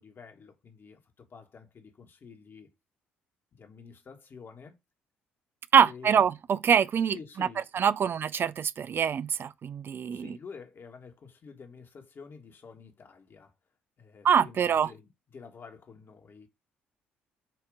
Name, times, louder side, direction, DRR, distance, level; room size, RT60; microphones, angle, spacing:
voice 1, 0.0-2.7 3.5-4.8 5.8-6.3 7.1-8.2 10.1-13.5 14.0-16.5, left 5 dB, 45° left, 1.6 m, -49 dB
voice 2, 5.7-7.5 7.7-10.4 14.2-14.9, right 7 dB, 45° right, 0.4 m, -24 dB
7.6 x 2.9 x 5.0 m
hypercardioid pair, 55°, 5 cm